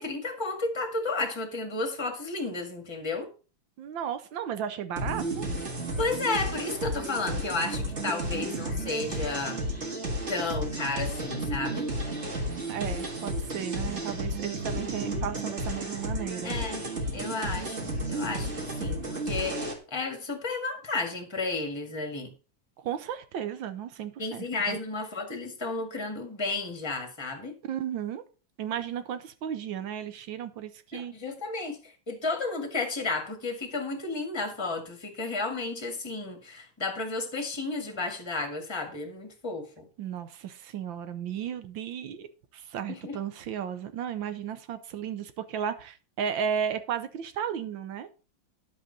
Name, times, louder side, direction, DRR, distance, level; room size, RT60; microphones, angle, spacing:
voice 1, 0.0-3.3 6.0-9.6 10.3-11.9 16.4-16.9 17.1-22.3 24.2-27.5 30.9-39.9 43.0-43.1, left 3 dB, 15° left, 1.7 m, -32 dB
voice 2, 3.8-5.4 12.7-16.5 22.8-24.8 27.6-28.2 28.6-31.1 40.0-48.1, right 8 dB, 75° right, 1.5 m, -34 dB
sound 1, 5.0-19.7, right 1 dB, 35° right, 1.9 m, -32 dB
10.5 x 7.8 x 4.0 m
omnidirectional pair, 2.2 m